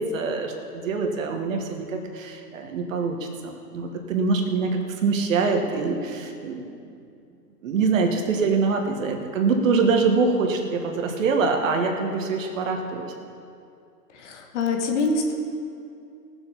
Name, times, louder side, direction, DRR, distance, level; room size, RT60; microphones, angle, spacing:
voice 1, 0.0-6.7 7.6-13.1, right 4 dB, 50° right, 4 dB, 1.6 m, -24 dB
voice 2, 14.1-15.3, left 3 dB, 45° left, 3 dB, 1.6 m, -25 dB
18.5 x 7.4 x 5.6 m, 2.5 s
hypercardioid pair, 145°, 50 cm